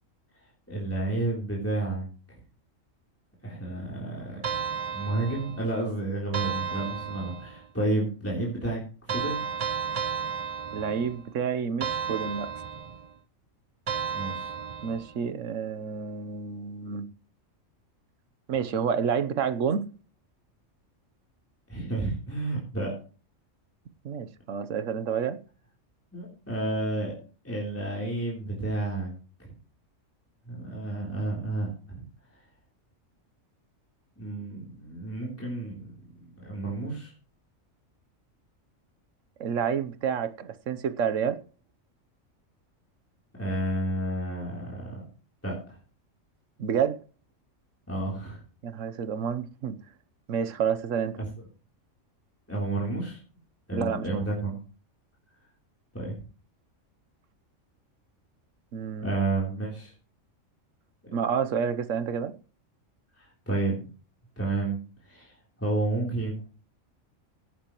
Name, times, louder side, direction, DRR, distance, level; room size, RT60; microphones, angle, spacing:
voice 1, 0.7-2.1 3.4-4.4 4.9-9.5 14.1-14.5 21.7-22.9 26.1-27.1 27.4-29.1 29.4-29.5 30.5-32.0 34.2-35.9 36.4-37.1 43.4-44.9 45.4-45.6 47.9-48.4 51.2-51.3 52.5-53.2 53.7-54.6 55.9-56.2 59.0-59.9 61.1-61.2 63.2-63.9 64.4-64.8 65.1-66.4, right 2 dB, 10° left, 3.4 m, -31 dB
sound 1, 4.4-5.8 6.3-7.7 9.1-11.3 11.8-13.1 13.9-15.2, right 7 dB, 55° right, 0.4 m, -33 dB
voice 2, 10.7-12.5 14.8-17.1 18.5-19.9 24.0-25.4 39.4-41.4 46.6-47.0 48.6-49.8 50.3-51.2 53.7-54.3 58.7-59.1 61.1-62.3, right 7 dB, 70° right, 1.2 m, -29 dB
17.5 x 9.3 x 3.0 m
omnidirectional pair, 1.4 m